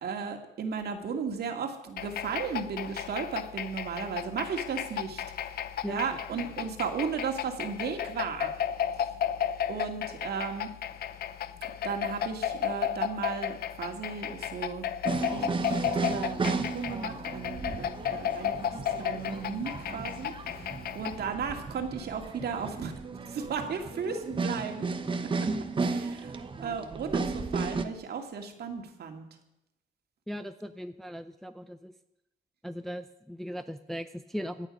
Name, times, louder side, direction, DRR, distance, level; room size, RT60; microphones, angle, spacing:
voice 1, 0.0-5.6 5.9-8.5 9.7-10.7 11.8-14.9 15.1-22.9 23.3-24.9 25.4-25.5 25.8-29.3, right 6 dB, 55° right, 4 dB, 2.2 m, -35 dB
sound 1, 2.0-21.3, left 9 dB, 55° left, 0.8 m, -34 dB
sound 2, 15.1-27.9, right 4 dB, 25° right, 1.1 m, -34 dB
voice 2, 30.3-31.9 32.6-34.7, equal, ahead, 8 dB, 0.5 m, -38 dB
25.5 x 9.0 x 5.4 m, 0.87 s
cardioid pair, 135°, 19 cm